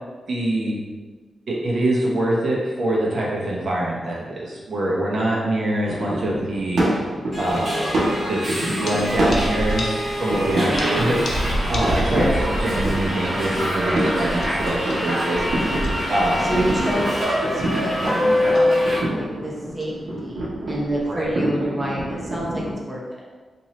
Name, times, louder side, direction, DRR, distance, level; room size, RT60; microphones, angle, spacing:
voice 1, 0.3-0.8 1.5-6.8 7.4-7.8 8.3-15.6 16.1-16.5 21.1-21.3, right 1 dB, 60° right, -4 dB, 0.8 m, -24 dB
sound 1, 5.9-22.7, right 1 dB, 85° right, 1.0 m, -28 dB
Subway metro underground, 7.3-19.0, equal, 40° right, 1.5 m, -24 dB
sound 2, 8.5-10.5 10.8-12.3 12.7-12.8 14.0-16.2 16.7-16.8 17.1-17.3 17.6-17.8 18.1-18.3 18.5-18.8 19.8-20.0, left 2 dB, 55° left, 0.6 m, -38 dB
voice 2, 10.5-10.9 12.0-12.4 16.4-23.3, right 1 dB, 10° right, -5 dB, 0.8 m, -28 dB
3.0 x 2.6 x 4.2 m, 1.4 s
wide cardioid pair, 115°, 0 cm